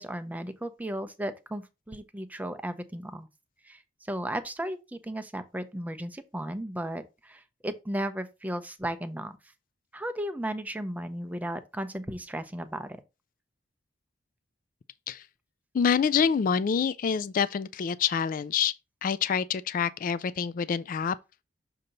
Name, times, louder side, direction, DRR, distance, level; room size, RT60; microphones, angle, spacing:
voice 1, 0.0-3.3 3.6-3.8 4.1-9.3 9.9-13.0, right 1 dB, 10° right, 0.6 m, -35 dB
voice 2, 15.7-18.7 19.0-21.2, left 7 dB, 45° left, 0.3 m, -26 dB
6.6 x 2.9 x 5.1 m
head